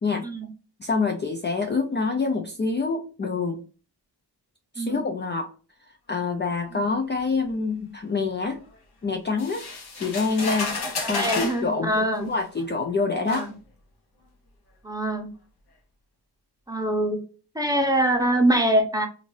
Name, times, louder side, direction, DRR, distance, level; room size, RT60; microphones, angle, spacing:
voice 1, 0.8-3.6 4.7-5.5 6.1-8.6 9.0-9.6 10.0-10.7 11.1-13.4, left 4 dB, 30° left, 3 dB, 0.3 m, -26 dB
sound 1, 9.4-11.6 12.6-12.7 13.3-13.5, left 3 dB, 70° left, 1.0 m, -31 dB
voice 2, 11.0-12.3 13.3-13.5 14.8-15.3 16.7-17.2 17.5-19.1, right 1 dB, 10° right, 3 dB, 0.6 m, -23 dB
2.7 x 2.5 x 3.1 m, 0.37 s
wide cardioid pair, 70°, 41 cm